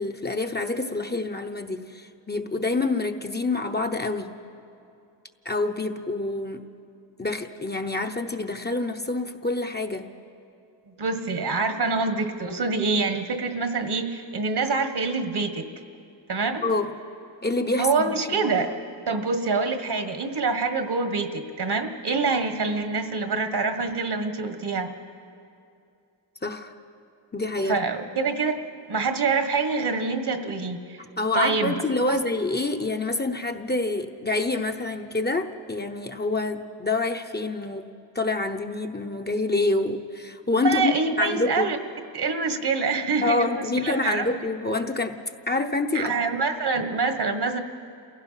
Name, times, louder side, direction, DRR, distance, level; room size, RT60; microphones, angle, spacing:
voice 1, 0.0-4.3 5.4-6.6 7.2-10.1 16.6-16.9 17.4-18.4 26.4-26.7 27.3-28.0 31.2-37.9 38.1-41.7 43.2-45.2 45.5-46.1, left 2 dB, 20° left, 4 dB, 0.9 m, -27 dB
voice 2, 11.0-15.7 16.3-16.6 17.8-18.7 19.1-24.9 27.7-28.6 28.9-31.0 31.3-31.7 40.6-41.8 42.1-44.2 45.9-47.6, right 4 dB, 60° right, 8 dB, 1.6 m, -26 dB
28.5 x 16.0 x 5.8 m, 2.6 s
wide cardioid pair, 80°, 45 cm